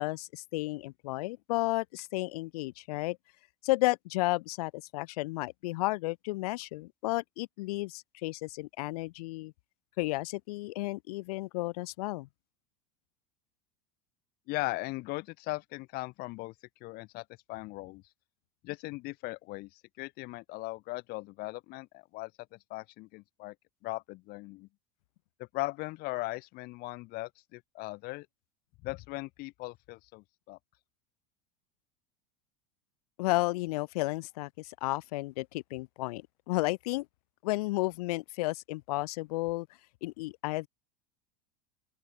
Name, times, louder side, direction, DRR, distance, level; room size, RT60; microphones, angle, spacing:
voice 1, 0.0-3.2 3.6-9.5 10.0-12.3 33.2-37.1 37.4-39.7 40.0-40.7, left 21 dB, 80° left, 0.5 m, -32 dB
voice 2, 14.5-16.5 16.8-18.0 18.6-23.5 23.8-24.7 25.4-28.3 28.8-30.6, left 22 dB, 55° left, 1.8 m, -39 dB
open air
supercardioid pair, 125°, 19 cm